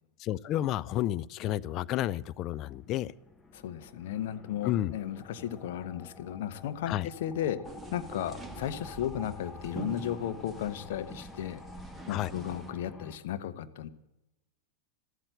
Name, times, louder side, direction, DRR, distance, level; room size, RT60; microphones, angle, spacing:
voice 1, 0.2-3.1 4.6-4.9 6.9-7.1 12.1-12.3, left 13 dB, 35° left, 17 dB, 0.4 m, -31 dB
sound 1, 2.6-13.2, left 3 dB, 15° left, 1.0 m, -49 dB
voice 2, 3.5-7.6 7.9-11.6 12.1-13.9, left 10 dB, 55° left, 10 dB, 1.0 m, -35 dB
sound 2, 7.6-12.7, right 4 dB, 10° right, 1.3 m, -46 dB
13.5 x 13.0 x 7.8 m, 0.94 s
figure-of-eight pair, 90°, 0 cm